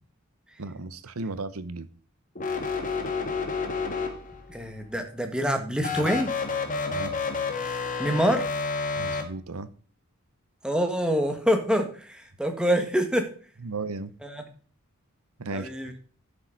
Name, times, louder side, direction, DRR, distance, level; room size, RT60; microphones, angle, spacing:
voice 1, 0.6-1.9 6.9-7.1 9.0-9.7 13.6-14.1 15.4-15.7, right 3 dB, 90° right, 0.9 m, -35 dB
sound 1, 2.3-4.5 5.8-9.2, left 4 dB, 40° left, 1.9 m, -30 dB
voice 2, 4.5-6.3 8.0-8.5 10.6-13.3 14.2-14.4 15.5-15.9, equal, 5° right, 1.6 m, -26 dB
12.0 x 6.9 x 3.9 m
head